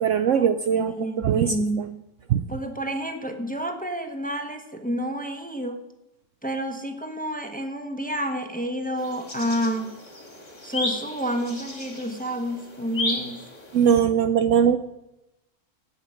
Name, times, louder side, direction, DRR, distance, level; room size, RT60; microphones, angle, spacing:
voice 1, 0.0-1.9 2.3-2.4 13.7-14.8, right 8 dB, 65° right, 11 dB, 0.8 m, -21 dB
voice 2, 0.7-2.0 2.5-5.8 6.4-9.9 10.6-13.4, equal, 5° left, 5 dB, 1.0 m, -29 dB
sound 1, 9.0-14.0, left 2 dB, 25° left, 2.3 m, -34 dB
17.0 x 5.8 x 7.5 m, 0.94 s
omnidirectional pair, 1.6 m